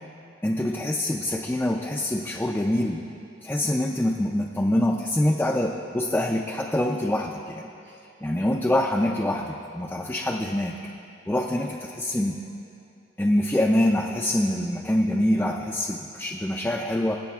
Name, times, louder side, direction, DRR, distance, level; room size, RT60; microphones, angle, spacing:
voice 1, 0.4-3.0 3.4-7.7 8.2-10.7 11.3-12.3 13.2-17.2, left 1 dB, 10° left, -1 dB, 0.4 m, -25 dB
24.0 x 8.4 x 2.3 m, 2.6 s
head